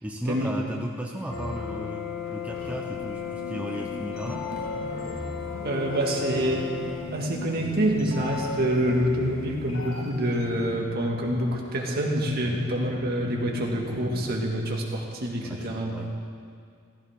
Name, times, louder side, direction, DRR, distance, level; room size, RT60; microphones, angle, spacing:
voice 1, 0.0-4.5 12.4-12.7 15.4-16.1, equal, 5° right, 0 dB, 0.7 m, -35 dB
sound 1, 1.3-10.8, left 5 dB, 85° left, 1.8 m, -35 dB
sound 2, 4.2-14.5, equal, 85° right, 3.8 m, -42 dB
voice 2, 5.6-6.7 7.1-15.9, right 1 dB, 50° right, -1 dB, 1.9 m, -26 dB
15.5 x 15.0 x 3.7 m, 2.3 s
head